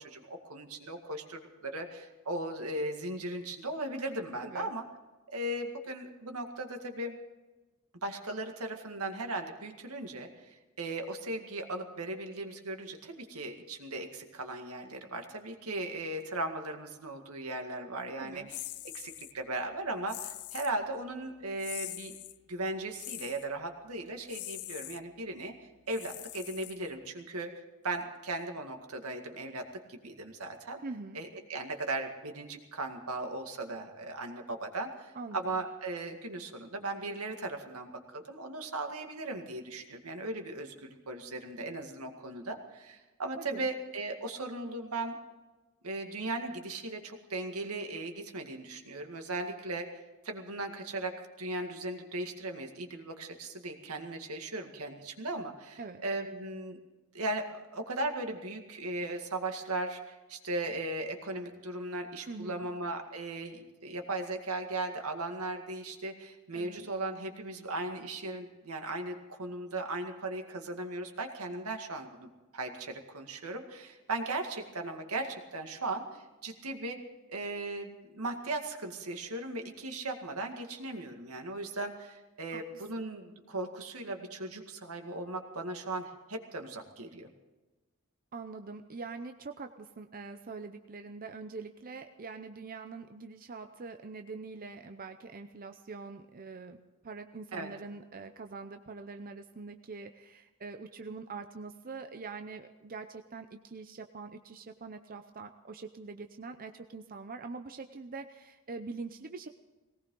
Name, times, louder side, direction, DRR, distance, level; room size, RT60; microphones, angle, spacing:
voice 1, 0.0-4.8 5.3-7.2 8.0-18.4 18.8-22.1 22.5-25.5 25.9-27.5 27.8-30.8 31.1-45.2 45.8-56.8 57.1-77.0 77.3-87.3 97.5-97.7, right 2 dB, 80° right, 4 dB, 2.1 m, -37 dB
voice 2, 4.4-4.7 18.2-18.5 30.8-31.2 35.1-35.5 43.4-43.7 55.8-56.0 62.3-62.7 66.5-66.9 82.5-83.0 88.3-96.8 97.0-109.5, right 4 dB, 40° right, 7 dB, 0.7 m, -44 dB
sound 1, 18.5-19.3 20.1-20.8 21.6-22.4 23.0-23.5 24.3-25.0 25.9-27.1, left 16 dB, 80° left, 0.6 m, -43 dB
19.5 x 18.5 x 3.9 m, 1.2 s
head